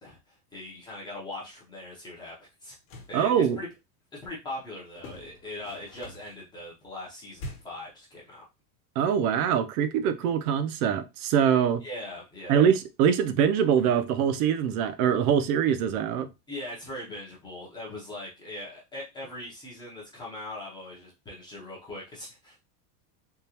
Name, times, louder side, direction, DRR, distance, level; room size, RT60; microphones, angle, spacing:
voice 1, 0.5-2.8 3.1-3.7 4.1-8.4 11.8-12.6 16.5-22.6, left 1 dB, 10° left, 0.6 m, -40 dB
sound 1, 2.7-3.2 4.9-6.4 7.4-7.9, left 1 dB, 45° left, 1.1 m, -43 dB
voice 2, 3.1-3.6 9.0-11.8 12.5-16.3, right 8 dB, 65° right, 0.6 m, -23 dB
3.7 x 2.3 x 2.8 m
supercardioid pair, 170°, 47 cm